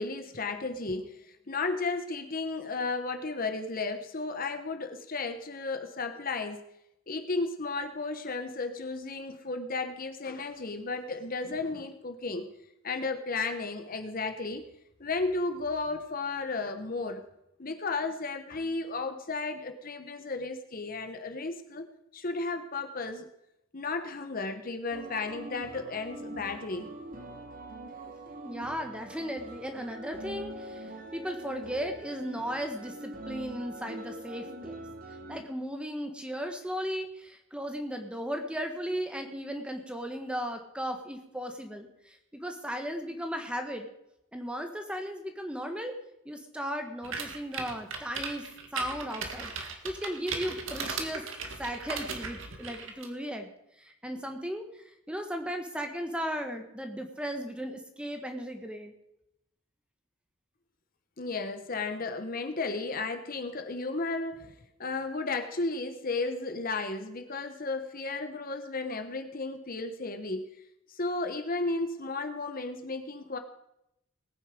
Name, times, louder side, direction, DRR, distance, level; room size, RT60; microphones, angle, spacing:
voice 1, 0.0-6.6 7.1-12.5 12.8-14.6 15.0-17.2 17.6-21.9 22.1-23.3 23.7-26.9 61.2-64.5 64.8-70.5 70.9-73.4, left 3 dB, 45° left, 6 dB, 1.1 m, -34 dB
sound 1, 24.9-35.4, right 1 dB, 45° right, 1.8 m, -43 dB
voice 2, 28.4-34.8 35.3-43.9 44.3-45.9 46.2-48.5 48.7-51.2 51.6-53.5 53.8-58.9, equal, 5° right, 5 dB, 1.5 m, -36 dB
sound 2, 47.0-53.1, right 4 dB, 70° right, 2.0 m, -37 dB
19.5 x 9.3 x 5.1 m, 0.81 s
head